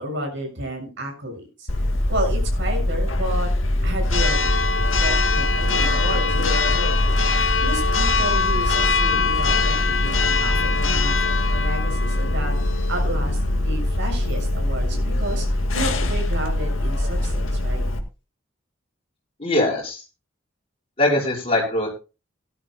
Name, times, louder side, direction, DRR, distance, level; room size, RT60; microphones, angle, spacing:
voice 1, 0.0-1.7 2.1-3.5 3.8-4.7 5.0-11.2 11.5-15.5 15.7-17.8, right 1 dB, 65° right, 2 dB, 6.8 m, -31 dB
Church bell, 1.7-18.0, left 2 dB, 85° left, 2.0 m, -21 dB
voice 2, 19.4-20.0 21.0-21.9, left 1 dB, 30° left, -3 dB, 5.5 m, -21 dB
18.0 x 12.0 x 2.3 m, 0.30 s
head